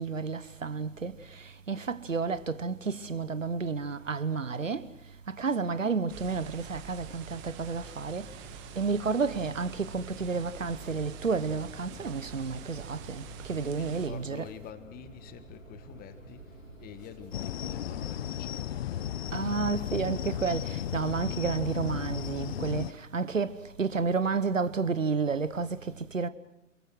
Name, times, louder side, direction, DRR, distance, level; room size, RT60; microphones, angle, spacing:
voice 1, 0.0-4.9 5.3-8.3 8.8-14.5 19.3-26.3, right 5 dB, 80° right, 1.2 m, -31 dB
sound 1, 6.1-14.1, right 5 dB, 30° right, 1.9 m, -46 dB
sound 2, 7.5-18.1, equal, 85° left, 3.4 m, -51 dB
voice 2, 13.6-18.8, left 10 dB, 25° left, 1.5 m, -48 dB
sound 3, 17.3-22.9, left 11 dB, 50° left, 0.9 m, -34 dB
28.5 x 22.0 x 6.2 m
figure-of-eight pair, 105°, 38 cm